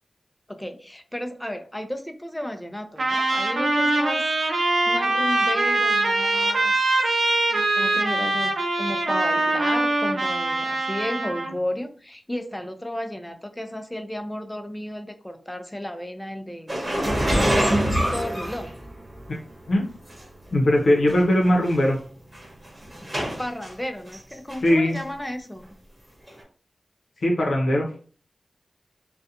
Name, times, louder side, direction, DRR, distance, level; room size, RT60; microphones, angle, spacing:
voice 1, 0.5-4.3 4.9-7.0 7.5-16.8 17.5-18.7 23.4-25.7, left 1 dB, 10° left, 6 dB, 0.4 m, -33 dB
Trumpet, 3.0-11.5, right 2 dB, 80° right, 0.5 m, -23 dB
sound 1, 16.7-19.3 20.1-20.2 21.1-21.2 21.4-21.7 22.3-23.7 24.1-24.7 24.9-25.0 26.3-26.4, right 1 dB, 35° right, 1.0 m, -25 dB
voice 2, 20.5-22.0 24.6-25.0 27.2-27.9, left 1 dB, 90° left, -2 dB, 0.6 m, -20 dB
2.4 x 2.1 x 2.7 m, 0.40 s
wide cardioid pair, 80°, 0 cm